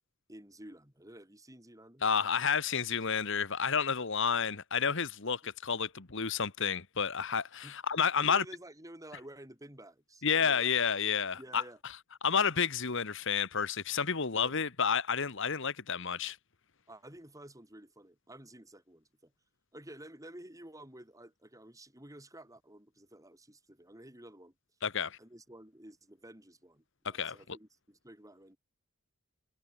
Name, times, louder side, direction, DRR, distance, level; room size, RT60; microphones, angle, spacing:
voice 1, 0.3-2.0 7.6-7.8 8.1-10.7 11.4-11.8 14.3-14.6 16.9-19.3 19.7-24.5 25.2-28.6, right 1 dB, 15° right, 6.0 m, -51 dB
voice 2, 2.0-8.4 10.2-11.6 12.2-16.4 24.8-25.2 27.0-27.4, left 6 dB, 60° left, 1.5 m, -30 dB
head